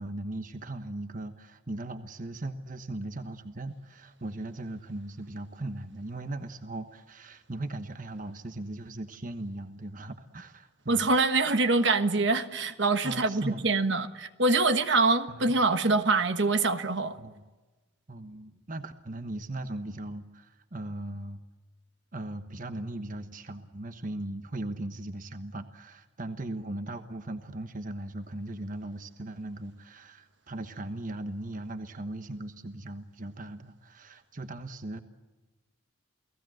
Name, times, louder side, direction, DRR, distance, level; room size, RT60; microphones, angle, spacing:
voice 1, 0.0-11.0 13.0-13.7 15.3-15.5 17.2-17.4 18.1-21.4 22.1-35.0, right 1 dB, 40° right, 8 dB, 1.2 m, -38 dB
voice 2, 10.9-17.2, right 3 dB, 60° right, 9 dB, 1.4 m, -25 dB
29.5 x 18.5 x 7.8 m, 1.2 s
head